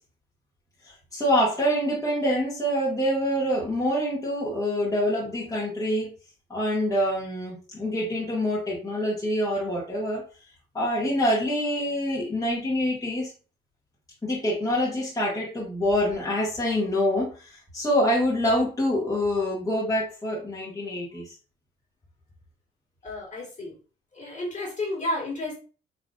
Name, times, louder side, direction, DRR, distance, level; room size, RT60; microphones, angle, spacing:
voice 1, 1.1-6.1 6.5-10.2 10.7-13.3 14.2-21.3, equal, 15° left, -6 dB, 1.5 m, -26 dB
voice 2, 23.0-23.7 24.1-25.6, left 1 dB, 40° left, -2 dB, 1.9 m, -31 dB
3.9 x 3.1 x 2.4 m, 0.35 s
cardioid pair, 90°, 20 cm